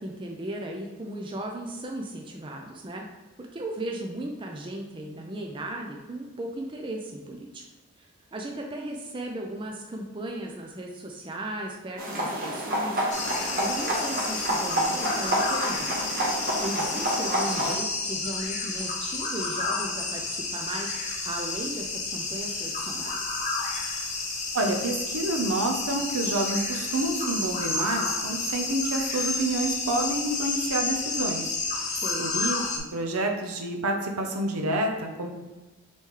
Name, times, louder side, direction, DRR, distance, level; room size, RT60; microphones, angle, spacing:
voice 1, 0.0-3.1 3.4-7.6 8.0-16.0 16.6-21.0 21.2-23.4 31.8-32.3, right 1 dB, 20° right, 1 dB, 0.4 m, -36 dB
sound 1, 12.0-17.7, right 1 dB, 40° right, 0.9 m, -28 dB
sound 2, 13.1-32.8, left 3 dB, 30° left, 0.5 m, -31 dB
voice 2, 24.5-35.3, right 2 dB, 85° right, 3 dB, 0.7 m, -29 dB
4.1 x 3.1 x 3.7 m, 1.1 s
head